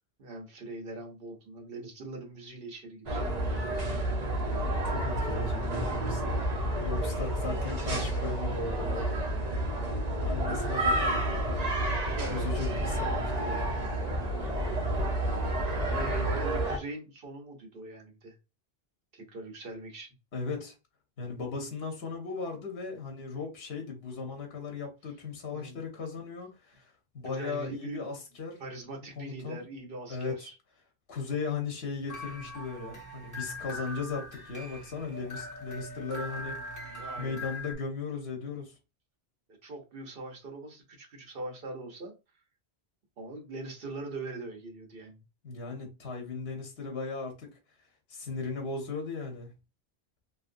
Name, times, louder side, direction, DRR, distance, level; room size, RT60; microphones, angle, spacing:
voice 1, 0.2-3.7 12.0-12.7 15.4-18.3 19.1-20.1 25.5-25.8 27.2-28.0 28.6-30.5 36.9-37.4 39.6-42.1 43.2-45.2, right 2 dB, 65° right, 1.1 m, -42 dB
sound 1, 3.1-16.8, right 1 dB, 45° right, 0.9 m, -30 dB
voice 2, 4.8-6.4 6.8-9.1 10.2-11.7 12.2-13.7 20.3-20.7 21.2-28.6 29.2-29.6 30.1-30.5 31.1-36.9 37.2-38.7 45.4-47.5 48.1-49.5, left 4 dB, 80° left, 1.2 m, -37 dB
sound 2, 32.1-37.7, left 1 dB, 20° left, 1.1 m, -41 dB
3.0 x 2.6 x 2.5 m
omnidirectional pair, 1.0 m